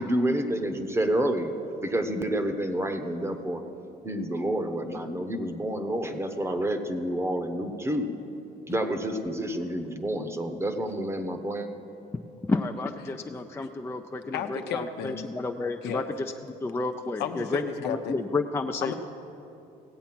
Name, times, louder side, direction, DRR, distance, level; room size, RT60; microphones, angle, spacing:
voice 1, 0.0-1.5 1.8-3.6 4.0-8.1 8.7-11.7, right 1 dB, 15° right, 7 dB, 1.0 m, -29 dB
voice 2, 12.5-16.3 16.6-18.9, left 3 dB, 15° left, 4 dB, 0.4 m, -31 dB
voice 3, 14.3-15.3 15.8-16.1 17.2-18.1 18.8-18.9, left 8 dB, 80° left, 6 dB, 0.9 m, -32 dB
16.5 x 8.2 x 6.0 m, 2.8 s
cardioid pair, 110°, 17 cm